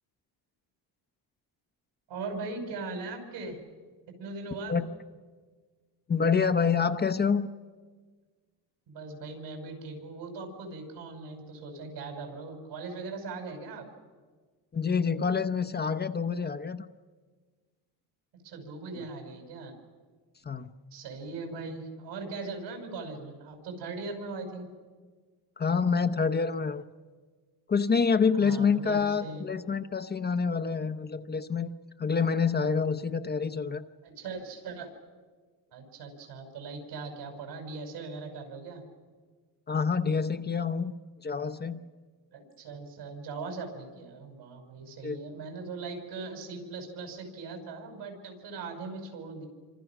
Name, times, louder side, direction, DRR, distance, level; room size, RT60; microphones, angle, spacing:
voice 1, 2.1-3.6 4.1-4.8 8.9-13.9 18.4-19.7 20.9-24.7 28.3-29.4 34.0-34.9 35.7-38.8 42.3-49.4, right 3 dB, 80° right, 4 dB, 5.9 m, -40 dB
voice 2, 6.1-7.5 14.7-16.9 19.0-19.1 20.4-20.7 25.6-26.8 27.7-31.7 32.0-33.8 39.7-40.9 41.2-41.8 45.0-45.2, left 5 dB, 25° left, 10 dB, 0.8 m, -27 dB
27.5 x 25.5 x 6.0 m, 1.5 s
cardioid pair, 120°, 41 cm